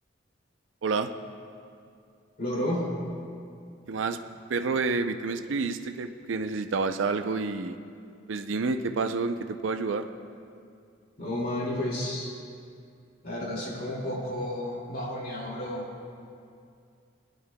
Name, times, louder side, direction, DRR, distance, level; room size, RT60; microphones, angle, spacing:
voice 1, 2.4-2.9 11.2-12.3 13.2-15.9, left 1 dB, 50° left, -3 dB, 2.4 m, -31 dB
voice 2, 3.9-4.2 4.5-7.8 8.3-10.0, right 4 dB, 80° right, 8 dB, 0.5 m, -29 dB
19.5 x 10.5 x 2.2 m, 2.4 s
head